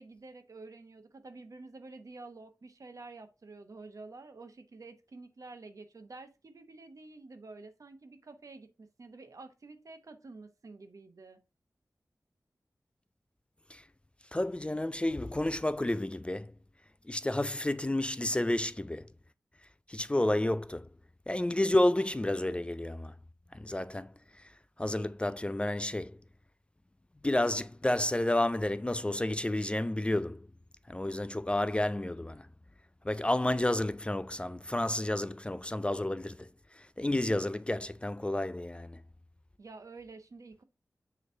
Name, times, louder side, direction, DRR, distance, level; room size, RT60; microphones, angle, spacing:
voice 1, 0.0-11.4 39.6-40.6, right 3 dB, 65° right, 0.9 m, -49 dB
voice 2, 14.3-16.5 17.1-19.1 19.9-20.9 21.3-23.1 23.5-24.5 24.8-26.2 27.2-30.5 30.9-32.5 33.0-39.0, left 1 dB, 20° left, 0.3 m, -31 dB
6.8 x 3.2 x 4.5 m
cardioid pair, 45°, 6 cm